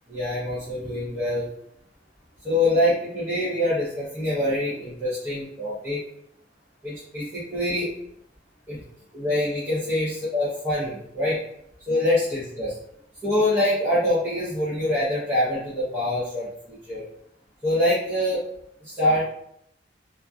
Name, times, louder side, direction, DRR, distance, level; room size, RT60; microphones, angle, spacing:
voice 1, 0.1-1.5 2.4-6.0 6.8-7.9 8.7-8.8 9.1-11.4 11.9-12.7 13.2-17.0 17.6-18.4 18.8-19.3, left 1 dB, 15° right, -12 dB, 0.9 m, -25 dB
2.9 x 2.5 x 2.4 m, 0.74 s
head